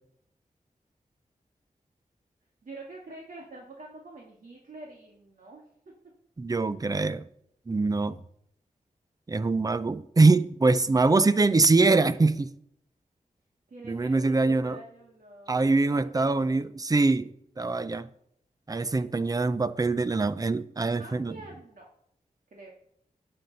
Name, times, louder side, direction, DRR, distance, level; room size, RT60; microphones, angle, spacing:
voice 1, 2.6-5.6 13.7-16.7 20.7-21.9 22.5-22.7, right 2 dB, 70° right, 2.1 m, -47 dB
voice 2, 6.4-7.2 7.7-8.2 9.3-12.5 13.8-14.8 15.5-17.3 17.6-18.1 18.7-21.3, right 3 dB, 25° right, 0.6 m, -23 dB
17.0 x 7.8 x 4.1 m
wide cardioid pair, 105°, 14 cm